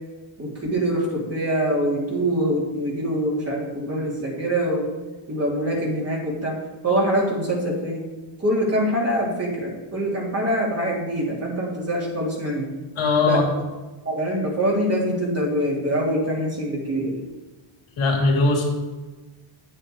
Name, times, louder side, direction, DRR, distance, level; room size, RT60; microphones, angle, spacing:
voice 1, 0.4-4.9 5.3-6.6 6.8-8.0 8.4-12.7 13.2-13.5 14.1-17.1, right 1 dB, 30° right, -3 dB, 3.5 m, -24 dB
voice 2, 13.0-13.5 18.0-18.6, left 3 dB, 80° left, -1 dB, 2.7 m, -19 dB
8.7 x 8.5 x 4.8 m, 1.2 s
cardioid pair, 100°, 48 cm